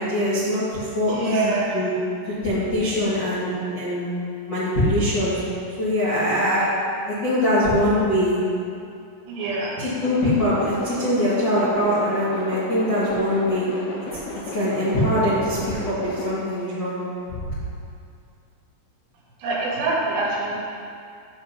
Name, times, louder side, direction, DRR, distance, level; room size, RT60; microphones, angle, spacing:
voice 1, 0.0-1.9 2.4-4.1 4.5-5.4 5.8-6.7 7.0-8.4 9.8-13.6 14.1-14.2 14.5-17.0 17.4-17.5, left 1 dB, 70° left, -13 dB, 1.0 m, -22 dB
voice 2, 1.1-1.8 9.3-9.8 19.4-20.5, right 3 dB, 70° right, -6 dB, 3.8 m, -25 dB
sound 1, 10.0-16.4, left 3 dB, 90° left, 2.3 m, -35 dB
11.5 x 7.8 x 2.8 m, 2.4 s
omnidirectional pair, 5.8 m